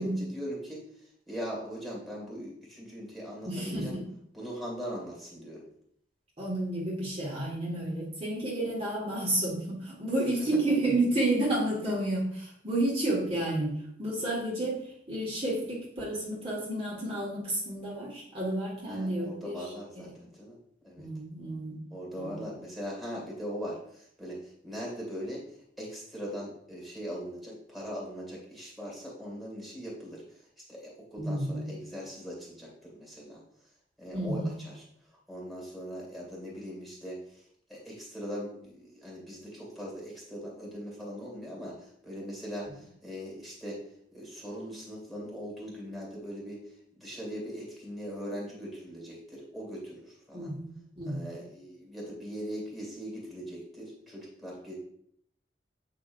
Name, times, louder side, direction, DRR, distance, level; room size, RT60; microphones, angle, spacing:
voice 1, 0.0-3.9 4.3-5.7 13.3-13.4 18.9-20.6 20.8-21.1 21.9-25.5 25.8-30.2 30.7-33.4 34.0-34.8 35.3-37.4 37.7-43.8 44.1-46.6 47.0-50.5 51.1-54.7, equal, ahead, -4 dB, 2.2 m, -40 dB
voice 2, 3.5-4.1 6.4-19.6 20.0-20.1 21.0-21.8 22.1-22.5 31.2-31.7 34.1-34.5 50.3-50.7 51.0-51.3, right 1 dB, 30° right, -5 dB, 1.9 m, -31 dB
8.1 x 5.6 x 2.6 m, 0.70 s
head